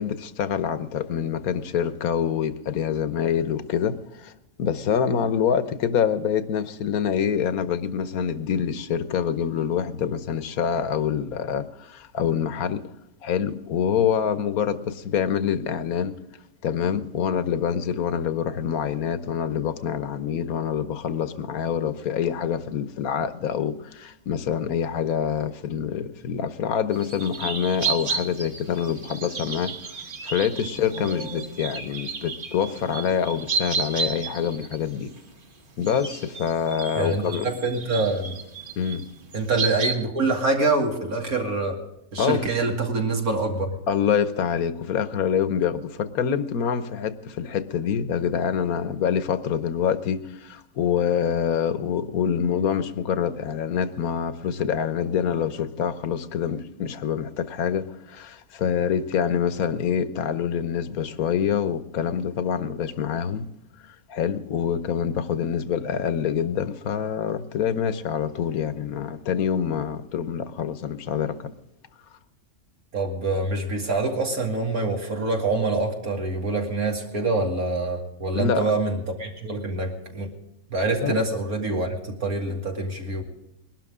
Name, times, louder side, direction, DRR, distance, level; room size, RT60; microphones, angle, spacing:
voice 1, 0.0-4.3 4.6-12.9 13.2-16.2 16.6-29.7 30.2-35.1 35.8-37.5 38.8-39.1 42.2-42.4 43.9-63.5 63.9-71.5 78.3-78.7 81.0-81.2, left 8 dB, 75° left, 1.4 m, -26 dB
sound 1, 26.9-35.4 35.8-40.0, right 4 dB, 35° right, 1.3 m, -32 dB
voice 2, 36.9-38.4 39.3-41.8 42.1-43.8 72.9-80.3 80.7-83.2, right 3 dB, 75° right, 3.0 m, -25 dB
21.5 x 12.0 x 3.7 m
omnidirectional pair, 1.6 m